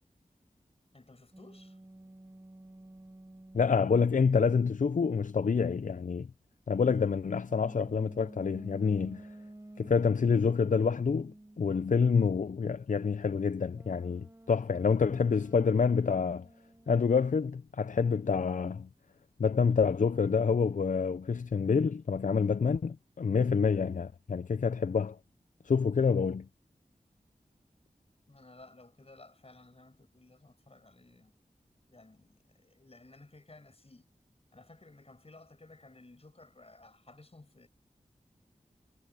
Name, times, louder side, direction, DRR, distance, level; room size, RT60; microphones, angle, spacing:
voice 1, 0.9-1.8 28.3-31.3 31.9-34.1 34.5-37.7, left 2 dB, 45° left, 6.0 m, -56 dB
sound 1, 1.3-5.1 7.5-11.8 13.7-17.5, right 1 dB, 20° right, 1.5 m, -52 dB
voice 2, 3.5-6.3 6.7-9.3 9.8-16.5 16.9-18.9 19.4-25.2 25.6-26.5, left 5 dB, 60° left, 0.5 m, -27 dB
wide cardioid pair, 65°, 15 cm